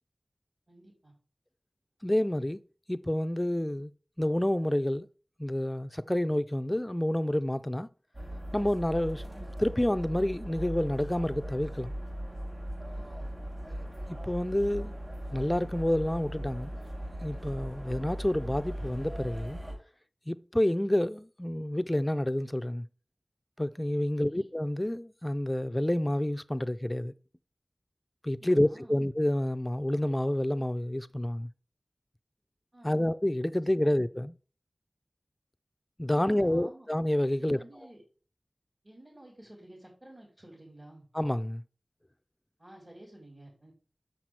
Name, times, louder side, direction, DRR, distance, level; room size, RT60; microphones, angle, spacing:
voice 1, 0.7-1.1 12.9-13.3 24.1-24.5 28.4-29.1 32.7-33.1 33.8-34.2 36.1-36.9 37.4-38.0 38.8-41.1 42.6-43.7, right 1 dB, 40° right, 3.8 m, -52 dB
voice 2, 2.0-2.6 2.9-3.9 4.2-5.1 5.4-7.9 8.5-11.9 14.1-14.9 15.3-16.8 17.2-19.6 20.3-22.9 23.6-27.1 28.2-31.5 32.8-34.4 36.0-37.6 41.1-41.6, left 1 dB, 20° left, 0.5 m, -29 dB
sound 1, 8.1-19.7, equal, 70° right, 4.9 m, -39 dB
6.8 x 5.9 x 4.7 m
wide cardioid pair, 45°, 0 cm